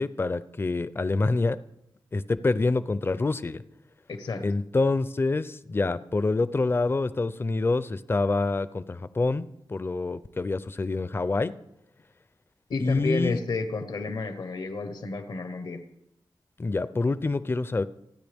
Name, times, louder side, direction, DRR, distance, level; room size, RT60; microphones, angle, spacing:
voice 1, 0.0-1.6 2.1-3.6 4.4-11.6 12.8-13.4 16.6-17.8, left 3 dB, 30° left, 15 dB, 0.5 m, -26 dB
voice 2, 4.1-4.5 12.7-15.8, left 3 dB, 80° left, 8 dB, 1.1 m, -31 dB
29.0 x 9.8 x 3.5 m, 0.81 s
wide cardioid pair, 135°, 8 cm